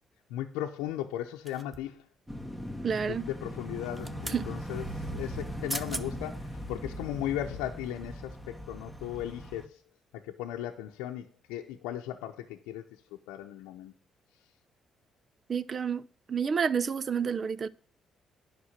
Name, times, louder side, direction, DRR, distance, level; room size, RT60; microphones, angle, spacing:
voice 1, 0.3-2.1 3.0-9.8 10.1-12.8 13.1-13.9, left 12 dB, 90° left, 0.7 m, -37 dB
sound 1, 1.5-2.0 3.8-4.4 5.4-5.5 5.7-6.1 6.6-6.8, right 2 dB, 25° right, 1.0 m, -39 dB
sound 2, 2.3-9.6, equal, 10° right, 2.0 m, -39 dB
voice 2, 2.8-3.2 4.3-4.5 15.5-16.0 16.3-17.7, right 6 dB, 50° right, 0.7 m, -29 dB
9.8 x 6.1 x 7.3 m
supercardioid pair, 55°, 0 cm